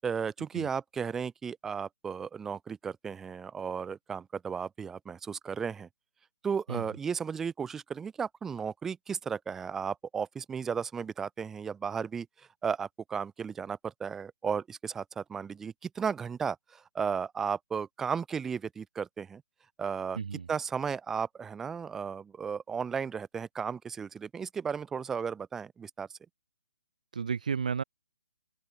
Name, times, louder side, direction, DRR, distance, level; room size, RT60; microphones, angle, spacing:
voice 1, 0.0-5.9 6.4-19.4 19.8-26.1, right 6 dB, 10° right, 6.7 m, -34 dB
voice 2, 20.2-20.5 27.1-27.8, right 6 dB, 70° right, 6.9 m, -32 dB
open air
hypercardioid pair, 155°, 4 cm